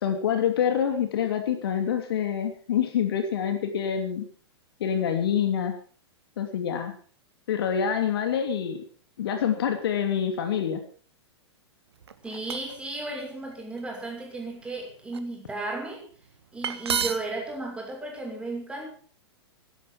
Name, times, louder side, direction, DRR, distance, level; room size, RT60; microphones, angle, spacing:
voice 1, 0.0-4.3 4.8-5.7 6.4-6.9 7.5-8.8 9.2-10.8, left 8 dB, 55° left, 6 dB, 2.8 m, -26 dB
sound 1, 12.0-12.8 13.5-13.8 14.4-15.2 16.3-16.4 16.6-17.4, right 7 dB, 65° right, 1.6 m, -31 dB
voice 2, 12.2-16.0 16.5-18.9, right 2 dB, 5° right, 0 dB, 6.4 m, -34 dB
16.5 x 12.5 x 6.0 m, 0.43 s
figure-of-eight pair, 100°, 15 cm